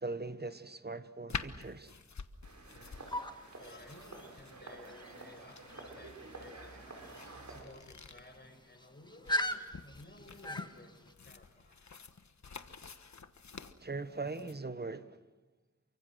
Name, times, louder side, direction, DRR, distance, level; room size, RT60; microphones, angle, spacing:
voice 1, 0.0-1.9 13.8-15.2, right 3 dB, 35° right, 1.2 m, -40 dB
sound 1, 1.3-14.6, left 5 dB, 70° left, 1.3 m, -48 dB
sound 2, 2.4-7.6, right 2 dB, 70° right, 5.6 m, -50 dB
sound 3, 3.1-11.1, left 1 dB, 15° left, 1.7 m, -41 dB
voice 2, 3.6-4.1 4.3-11.0 11.2-11.8, left 1 dB, 35° left, 6.4 m, -56 dB
29.5 x 24.5 x 6.4 m
wide cardioid pair, 55°, 29 cm